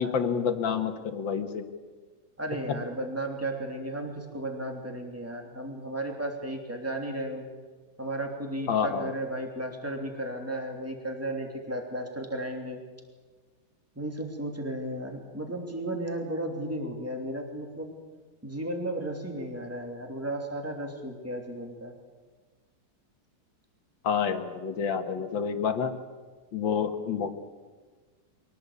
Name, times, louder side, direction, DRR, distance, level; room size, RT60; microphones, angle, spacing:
voice 1, 0.0-1.6 2.7-2.8 8.7-9.1 24.0-25.9 26.5-27.3, left 7 dB, 80° left, 8 dB, 2.2 m, -28 dB
voice 2, 2.4-7.5 8.0-12.8 13.9-17.9 18.4-22.0, right 1 dB, 5° right, 2 dB, 2.9 m, -34 dB
23.5 x 17.5 x 8.5 m, 1.4 s
omnidirectional pair, 2.0 m